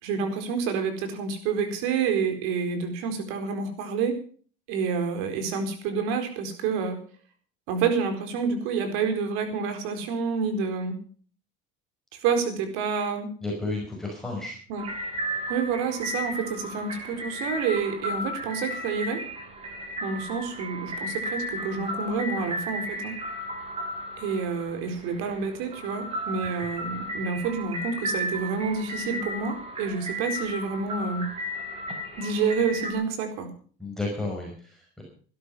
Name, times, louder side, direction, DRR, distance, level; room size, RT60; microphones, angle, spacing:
voice 1, 0.0-4.2 4.7-7.0 7.7-11.0 12.1-13.3 14.7-14.8 15.5-19.2 20.0-23.2 24.2-31.3 32.2-33.5, right 5 dB, 80° right, 7 dB, 4.4 m, -28 dB
voice 2, 13.4-14.6 33.8-35.0, left 2 dB, ahead, -2 dB, 5.4 m, -32 dB
sound 1, 14.8-32.9, equal, 30° right, 4.2 m, -34 dB
17.5 x 12.5 x 5.5 m, 0.43 s
cardioid pair, 150°, 21 cm